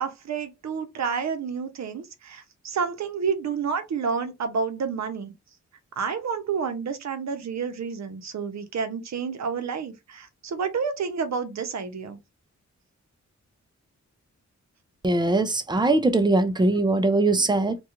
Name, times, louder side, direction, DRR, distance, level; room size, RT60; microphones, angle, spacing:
voice 1, 0.0-5.3 6.0-12.2, right 6 dB, 65° right, 0.6 m, -29 dB
voice 2, 15.0-17.8, right 2 dB, 15° right, 0.3 m, -21 dB
2.4 x 2.3 x 2.9 m
wide cardioid pair, 120°, 30 cm